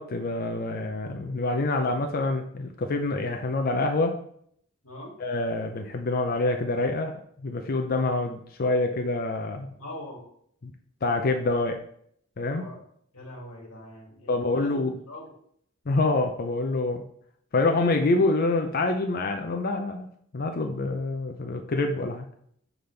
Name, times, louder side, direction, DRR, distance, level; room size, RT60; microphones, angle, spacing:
voice 1, 0.0-4.2 5.2-7.1 7.4-9.7 10.6-10.7 11.0-11.8 12.4-12.7 14.3-15.0 15.9-17.0 17.5-22.2, left 2 dB, 45° left, 4 dB, 0.5 m, -26 dB
voice 2, 9.8-10.2 12.5-12.8 13.1-14.8 15.1-15.3, left 1 dB, 85° left, -1 dB, 2.3 m, -42 dB
6.0 x 5.2 x 3.3 m, 0.66 s
head